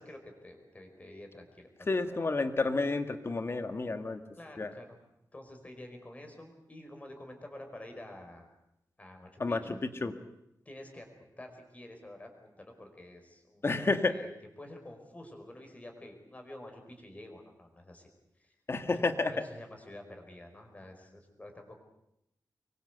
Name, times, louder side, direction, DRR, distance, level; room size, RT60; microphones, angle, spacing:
voice 1, 0.0-1.7 4.4-5.0 5.3-8.5 9.0-9.8 10.7-14.3 14.6-18.1 18.4-18.6 18.9-21.8, left 1 dB, 20° left, 4 dB, 5.1 m, -49 dB
voice 2, 1.9-4.2 4.6-4.7 9.4-10.1 13.6-14.2 18.7-19.3, left 3 dB, 35° left, 8 dB, 1.9 m, -30 dB
25.5 x 23.0 x 8.2 m, 0.82 s
wide cardioid pair, 160°, 7 cm